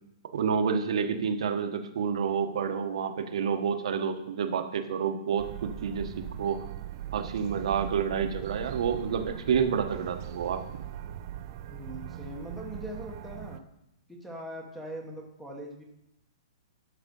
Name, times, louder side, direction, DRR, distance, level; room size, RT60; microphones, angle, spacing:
voice 1, 0.3-6.6 7.1-10.8, right 6 dB, 65° right, 7 dB, 1.2 m, -29 dB
sound 1, 5.4-13.6, right 11 dB, 35° right, 0.5 m, -40 dB
voice 2, 11.7-13.6 14.1-15.8, equal, ahead, 0 dB, 1.0 m, -41 dB
11.5 x 6.0 x 5.4 m, 0.84 s
hypercardioid pair, 165°, 3 cm